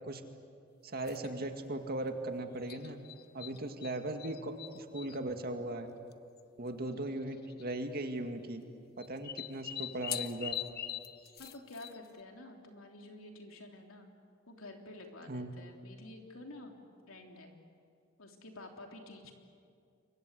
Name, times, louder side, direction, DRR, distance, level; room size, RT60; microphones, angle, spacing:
voice 1, 0.8-3.0 3.3-5.9 6.6-8.6 9.0-10.5 15.3-15.5, right 1 dB, 50° right, 5 dB, 2.1 m, -38 dB
sound 1, 1.0-1.3 2.7-5.2 6.1-6.2 6.4-6.5 7.4-7.7 9.0-12.2, left 11 dB, 50° left, 0.9 m, -41 dB
voice 2, 11.4-14.1 14.5-16.8 17.1-17.5 18.2-19.3, left 2 dB, 80° left, 2 dB, 3.4 m, -50 dB
28.5 x 23.5 x 8.4 m, 2.4 s
head